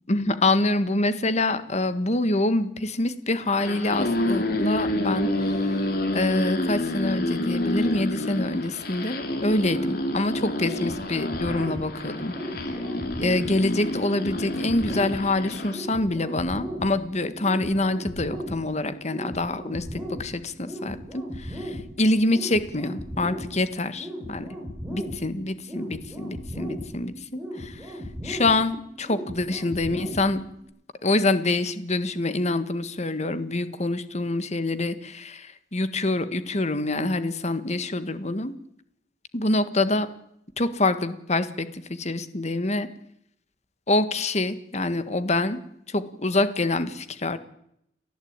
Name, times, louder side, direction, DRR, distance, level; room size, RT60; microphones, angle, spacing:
voice 1, 0.1-5.8 6.1-12.3 13.2-24.5 24.9-28.0 28.2-30.4 31.0-38.5 39.3-40.1 40.6-42.9 43.9-45.6 45.9-47.4, left 2 dB, 40° left, 12 dB, 1.6 m, -26 dB
sound 1, 3.5-15.8, left 1 dB, 60° left, 3.9 m, -28 dB
sound 2, 10.6-30.6, equal, 10° right, 6.7 m, -37 dB
30.0 x 11.5 x 8.9 m, 0.76 s
head